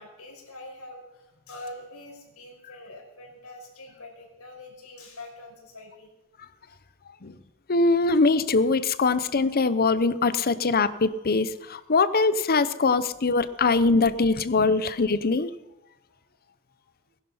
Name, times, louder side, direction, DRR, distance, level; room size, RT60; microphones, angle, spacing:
voice 1, 0.0-6.1 16.3-16.4, left 1 dB, 85° left, 0 dB, 5.5 m, -44 dB
voice 2, 7.7-15.5, left 3 dB, 45° left, 14 dB, 0.8 m, -22 dB
20.0 x 11.5 x 5.5 m, 1.0 s
head